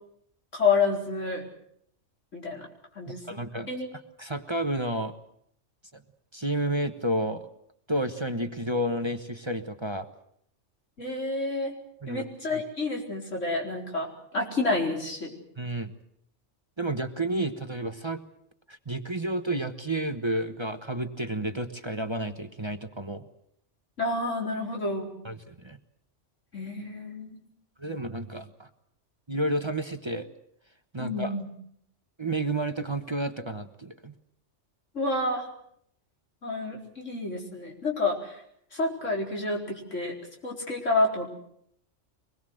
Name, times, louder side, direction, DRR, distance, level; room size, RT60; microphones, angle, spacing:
voice 1, 0.5-1.4 2.3-2.7 2.9-3.2 3.7-3.9 11.0-11.8 12.1-15.3 24.0-25.1 26.5-27.4 31.0-31.5 34.9-35.5 36.4-38.4 38.7-40.2 40.4-41.3, left 3 dB, 85° left, 0 dB, 4.8 m, -29 dB
voice 2, 3.1-3.7 4.2-5.1 6.3-7.5 7.9-10.1 12.0-12.6 15.6-15.9 16.8-18.2 18.7-23.2 25.2-25.8 27.8-28.7 29.3-30.3 30.9-31.4 32.2-34.1, right 1 dB, 25° right, 8 dB, 1.2 m, -31 dB
24.5 x 21.0 x 7.8 m, 0.70 s
omnidirectional pair, 1.2 m